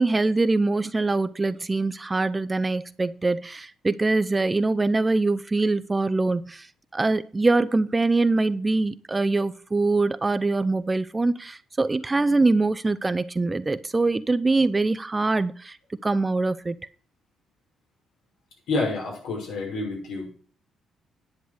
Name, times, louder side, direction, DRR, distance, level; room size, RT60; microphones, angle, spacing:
voice 1, 0.0-6.7 6.9-15.8 16.0-16.8, right 3 dB, 20° right, 0.6 m, -23 dB
voice 2, 18.7-20.3, left 3 dB, 80° left, 5.9 m, -28 dB
10.5 x 8.1 x 5.0 m
cardioid pair, 90°, 0 cm